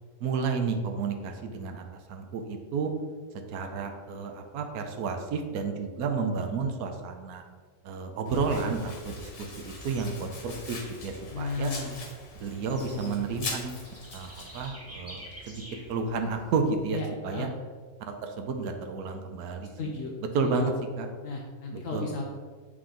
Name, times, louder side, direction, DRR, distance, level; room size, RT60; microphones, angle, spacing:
voice 1, 0.2-2.9 3.5-7.4 7.8-11.7 12.3-13.7 14.1-15.6 15.9-17.5 18.1-19.7 20.3-21.1 21.9-22.1, right 4 dB, 80° right, 5 dB, 1.2 m, -31 dB
Domestic sounds home sounds, 8.3-14.7, left 3 dB, 85° left, 1.6 m, -42 dB
Bird / Insect, 8.3-16.9, equal, 10° right, 1.3 m, -49 dB
voice 2, 11.3-12.0 12.8-13.2 16.9-17.5 19.8-20.1 20.4-20.7 21.2-22.2, left 4 dB, 65° left, -1 dB, 1.0 m, -34 dB
7.8 x 3.6 x 3.8 m, 1.5 s
omnidirectional pair, 1.6 m